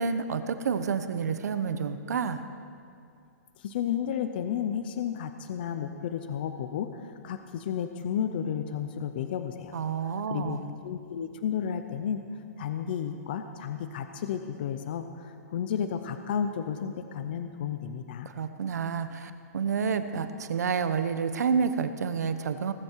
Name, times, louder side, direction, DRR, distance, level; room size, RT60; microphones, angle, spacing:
voice 1, 0.0-2.4 9.7-10.6 18.3-22.7, right 6 dB, 85° right, 10 dB, 1.1 m, -29 dB
voice 2, 3.6-9.8 10.3-12.2 12.6-18.3, left 8 dB, 35° left, 8 dB, 0.6 m, -32 dB
19.0 x 14.5 x 4.7 m, 2.3 s
hypercardioid pair, 180°, 9 cm